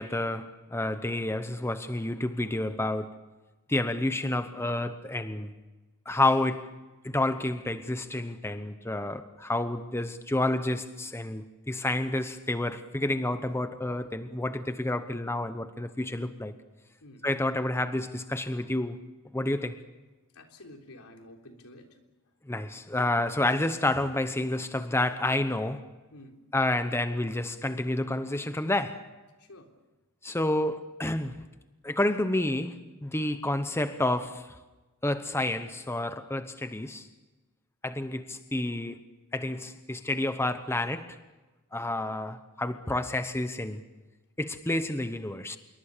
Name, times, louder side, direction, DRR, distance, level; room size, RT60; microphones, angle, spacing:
voice 1, 0.0-3.2 3.7-5.6 6.1-6.7 7.0-16.5 17.2-19.0 19.3-19.8 22.5-25.9 26.5-29.1 30.2-31.4 31.8-34.6 35.0-37.1 37.8-39.0 39.3-41.2 41.7-43.8 44.4-45.6, left 1 dB, 10° left, 10 dB, 0.9 m, -29 dB
voice 2, 20.3-21.9 26.1-26.4 29.4-29.7, left 1 dB, 85° left, 3 dB, 3.7 m, -50 dB
27.0 x 23.0 x 6.8 m, 1.2 s
head